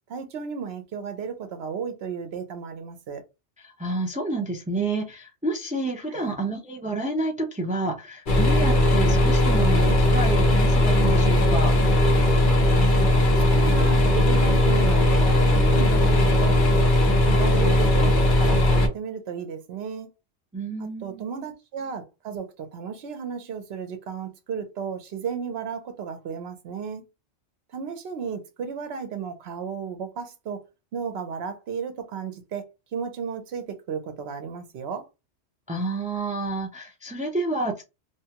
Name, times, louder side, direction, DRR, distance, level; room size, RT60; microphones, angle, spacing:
voice 1, 0.1-3.2 6.1-6.4 12.7-13.1 13.5-16.6 17.2-20.1 20.8-27.1 27.7-30.6 30.9-32.6 32.9-35.0, right 6 dB, 70° right, 0.9 m, -34 dB
voice 2, 3.6-11.7 20.5-21.3 35.7-37.8, right 2 dB, 10° right, 0.3 m, -29 dB
sound 1, 8.3-18.9, left 1 dB, 50° left, 0.9 m, -19 dB
2.9 x 2.3 x 2.8 m
omnidirectional pair, 1.2 m